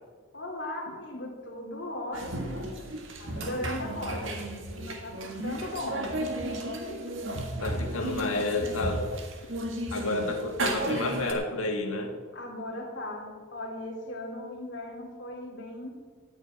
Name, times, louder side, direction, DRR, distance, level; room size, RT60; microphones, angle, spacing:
voice 1, 0.3-2.8 3.2-4.3 4.7-6.2 6.7-7.2 7.7-8.3 12.3-15.9, left 1 dB, 55° left, 0 dB, 3.1 m, -38 dB
sound 1, 2.1-11.3, right 1 dB, 65° right, 1.7 m, -34 dB
voice 2, 7.6-9.1 9.9-12.1, left 2 dB, 85° left, 2 dB, 2.0 m, -30 dB
13.0 x 6.6 x 9.4 m, 1.5 s
head